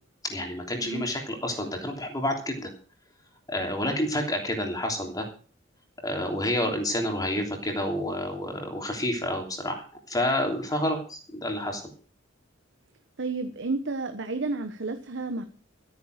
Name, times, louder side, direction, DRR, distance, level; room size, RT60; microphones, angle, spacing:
voice 1, 0.2-2.7 3.5-5.2 6.0-9.8 10.1-11.8, left 1 dB, 20° left, 3 dB, 3.2 m, -29 dB
voice 2, 13.2-15.4, right 3 dB, 65° right, 7 dB, 1.2 m, -31 dB
14.0 x 9.4 x 6.5 m, 0.40 s
head